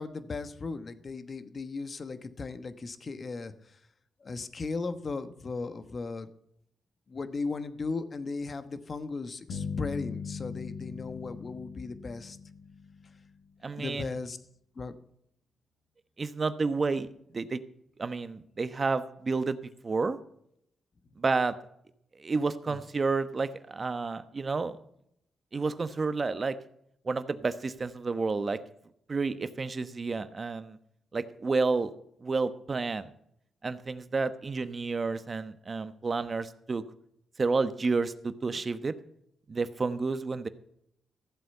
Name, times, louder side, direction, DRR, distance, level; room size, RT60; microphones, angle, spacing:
voice 1, 0.0-3.8 4.2-6.3 7.1-12.4 13.8-14.4 14.8-14.9 22.7-22.8, left 4 dB, 45° left, 11 dB, 1.2 m, -37 dB
sound 1, 9.5-13.5, left 6 dB, 80° left, 3.3 m, -39 dB
voice 2, 13.6-14.1 16.2-17.1 17.3-17.6 18.0-19.6 19.8-20.2 21.2-21.6 22.2-24.8 25.5-26.6 27.0-28.6 29.1-30.8 31.1-31.9 32.2-33.1 33.6-36.8 37.4-38.9 39.5-40.5, right 4 dB, 40° right, 12 dB, 1.0 m, -30 dB
14.5 x 7.8 x 5.5 m, 0.73 s
cardioid pair, 75°, 0 cm